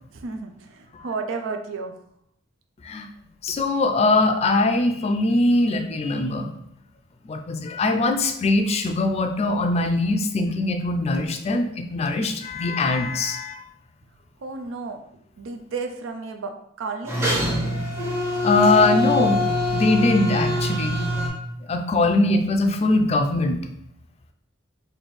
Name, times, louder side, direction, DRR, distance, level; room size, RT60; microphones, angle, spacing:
voice 1, 0.1-1.9 14.4-15.0 15.4-16.5 16.8-17.2, right 4 dB, 85° right, 5 dB, 0.4 m, -32 dB
voice 2, 3.4-6.5 7.2-13.6 18.4-19.4 19.7-21.0 21.7-23.6, left 2 dB, 35° left, 5 dB, 0.3 m, -21 dB
sound 1, 17.1-21.3, left 1 dB, 15° right, 0.6 m, -24 dB
4.2 x 2.6 x 3.1 m, 0.71 s
head